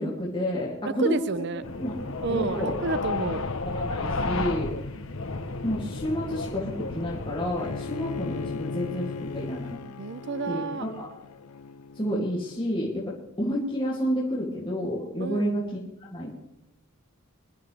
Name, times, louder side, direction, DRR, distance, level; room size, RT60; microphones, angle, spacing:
voice 1, 0.0-1.3 1.8-2.8 3.7-4.7 5.6-9.8 10.5-11.1 11.9-15.6 16.0-16.3, equal, 20° left, -6 dB, 2.7 m, -30 dB
voice 2, 0.8-1.6 2.2-3.5 10.0-10.9 15.2-15.5, right 4 dB, 50° right, 16 dB, 0.5 m, -30 dB
sound 1, 1.6-9.8, left 3 dB, 65° left, 1.0 m, -33 dB
Bowed string instrument, 7.6-12.7, left 4 dB, 85° left, 0.5 m, -37 dB
24.5 x 11.5 x 3.5 m, 0.95 s
head